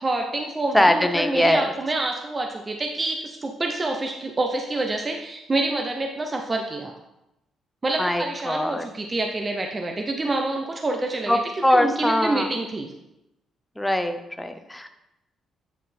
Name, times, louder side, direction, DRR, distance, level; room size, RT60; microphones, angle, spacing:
voice 1, 0.0-6.9 7.8-11.4 11.7-12.9, right 2 dB, 30° right, 3 dB, 0.7 m, -27 dB
voice 2, 0.7-1.7 8.0-8.9 11.3-12.5 13.8-14.9, left 1 dB, 5° left, 7 dB, 0.7 m, -22 dB
8.2 x 4.4 x 4.3 m, 0.90 s
cardioid pair, 90°, 0 cm